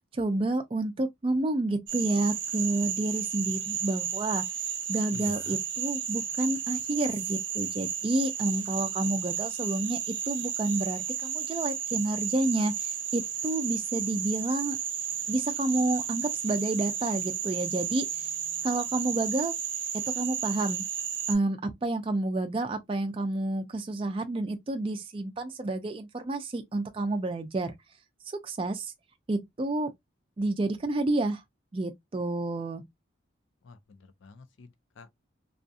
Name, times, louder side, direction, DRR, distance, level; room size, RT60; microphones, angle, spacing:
voice 1, 0.1-4.4 4.9-14.8 15.3-18.1 18.6-19.5 19.9-20.8 21.3-27.7 28.3-28.9 29.3-29.9 30.4-31.4 31.7-32.8, right 2 dB, 25° right, 0.3 m, -29 dB
Frog, 1.9-21.4, right 8 dB, 75° right, 0.6 m, -33 dB
voice 2, 5.1-5.6 33.6-35.2, left 4 dB, 75° left, 0.5 m, -48 dB
2.6 x 2.4 x 2.3 m
head